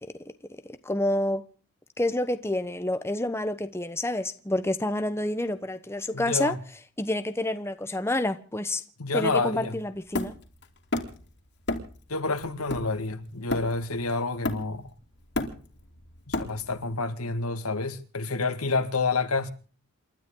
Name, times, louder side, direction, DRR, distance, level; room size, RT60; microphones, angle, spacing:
voice 1, 0.8-1.4 2.0-6.5 7.0-8.8 9.1-10.3, left 1 dB, 10° left, 1.0 m, -28 dB
voice 2, 6.1-6.6 9.0-9.7 12.1-14.9 16.3-19.5, left 3 dB, 75° left, 2.0 m, -28 dB
Hammer, 10.1-11.3 11.7-12.0 12.4-14.0 14.4-14.9 15.2-16.9, left 2 dB, 50° left, 2.8 m, -32 dB
29.0 x 13.0 x 3.9 m
head